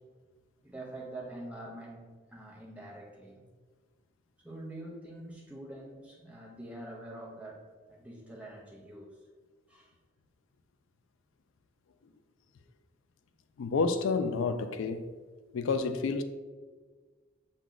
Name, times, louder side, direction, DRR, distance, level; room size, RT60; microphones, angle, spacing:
voice 1, 0.6-3.4 4.4-7.6 7.9-9.1 9.7-9.9, right 1 dB, 5° right, 0.6 m, -45 dB
voice 2, 13.6-15.1 15.5-16.2, left 4 dB, 85° left, 0.4 m, -29 dB
5.9 x 2.2 x 3.7 m
head